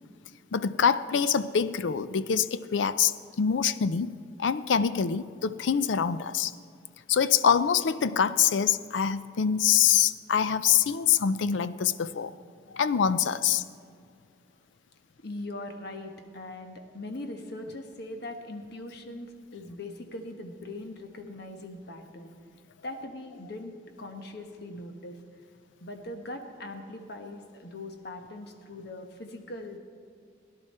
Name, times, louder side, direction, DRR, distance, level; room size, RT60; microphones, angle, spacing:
voice 1, 0.5-6.5 7.1-12.3 12.7-13.6, left 7 dB, 90° left, 15 dB, 0.5 m, -25 dB
voice 2, 15.2-22.3 22.8-23.7 24.0-25.2 25.8-29.8, left 1 dB, 65° left, 5 dB, 1.2 m, -40 dB
17.5 x 10.5 x 4.3 m, 2.2 s
head